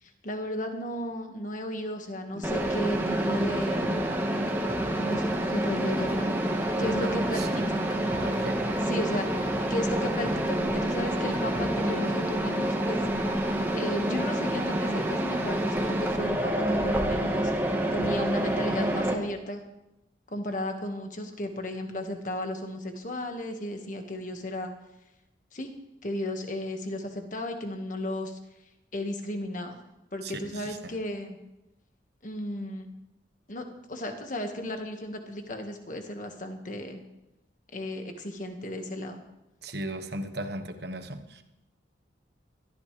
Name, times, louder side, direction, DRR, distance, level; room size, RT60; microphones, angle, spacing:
voice 1, 0.0-4.0 4.9-6.3 6.8-7.4 7.7-7.8 8.9-13.0 13.8-17.5 17.9-19.6 20.3-24.7 25.5-25.7 26.0-28.4 28.9-29.8 30.1-31.4 32.2-32.9 33.5-37.0 37.7-39.2, left 1 dB, 45° left, 5 dB, 1.7 m, -34 dB
sound 1, 2.3-11.8, left 1 dB, 25° left, 1.5 m, -40 dB
Mechanisms, 2.4-19.1, right 1 dB, 10° right, 1.5 m, -28 dB
voice 2, 6.7-7.7 8.2-8.7 30.2-30.9 39.6-41.4, right 1 dB, 60° right, 8 dB, 1.3 m, -37 dB
21.5 x 13.5 x 3.4 m, 0.94 s
head